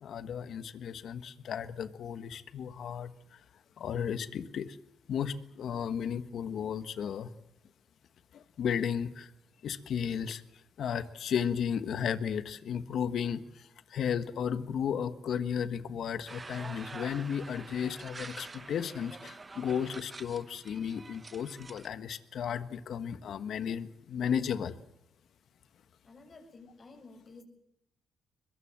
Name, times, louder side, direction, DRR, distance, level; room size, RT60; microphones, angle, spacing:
voice 1, 0.0-3.4 3.8-4.8 5.1-7.3 8.3-9.3 9.6-10.4 10.8-24.8, left 8 dB, 65° left, 12 dB, 1.4 m, -34 dB
sound 1, 16.3-21.9, right 3 dB, 25° right, 1.0 m, -47 dB
voice 2, 26.0-27.4, left 3 dB, 40° left, 5 dB, 7.4 m, -52 dB
22.5 x 22.5 x 7.6 m, 0.83 s
cardioid pair, 90°, 0 cm